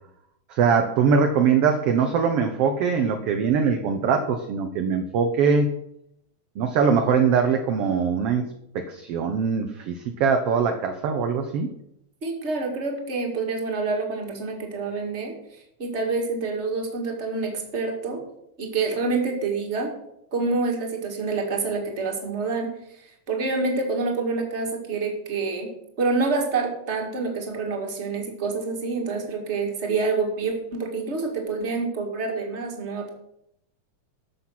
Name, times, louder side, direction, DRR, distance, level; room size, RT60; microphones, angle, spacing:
voice 1, 0.5-5.7 6.6-8.5 8.7-11.7, right 6 dB, 65° right, 5 dB, 1.6 m, -22 dB
voice 2, 12.2-18.2 18.6-19.9 20.3-25.7 26.0-33.1, right 4 dB, 25° right, 1 dB, 2.0 m, -27 dB
12.0 x 7.1 x 5.9 m, 0.78 s
omnidirectional pair, 3.3 m